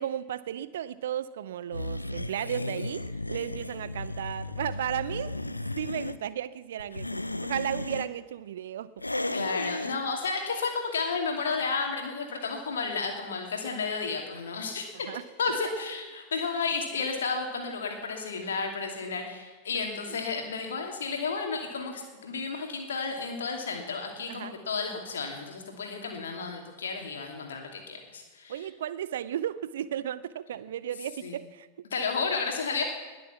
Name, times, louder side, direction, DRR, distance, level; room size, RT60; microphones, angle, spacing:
voice 1, 0.0-5.4 5.8-7.1 7.4-8.9 15.1-15.2 20.1-20.2 24.3-24.5 28.5-31.9, right 10 dB, 60° right, 17 dB, 0.4 m, -34 dB
sound 1, 1.7-6.2 6.8-8.1 9.0-10.0, left 2 dB, 85° left, 0.5 m, -34 dB
voice 2, 9.3-15.1 15.4-28.7 31.2-31.4 31.9-32.8, left 4 dB, 65° left, 3 dB, 2.6 m, -32 dB
20.5 x 7.1 x 7.1 m, 1.4 s
figure-of-eight pair, 90°, 0 cm